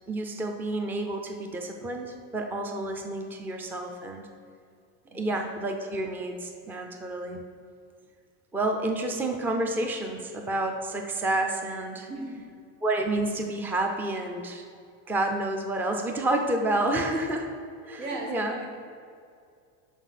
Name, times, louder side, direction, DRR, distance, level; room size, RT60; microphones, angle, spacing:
voice 1, 0.1-4.3 5.1-7.4 8.5-12.1 12.8-14.6 15.1-17.5 17.8-18.6, right 2 dB, 5° right, 4 dB, 0.3 m, -29 dB
voice 2, 12.1-12.5 18.0-18.7, right 2 dB, 90° right, 0 dB, 1.8 m, -37 dB
12.0 x 4.5 x 4.1 m, 2.3 s
cardioid pair, 145°, 40 cm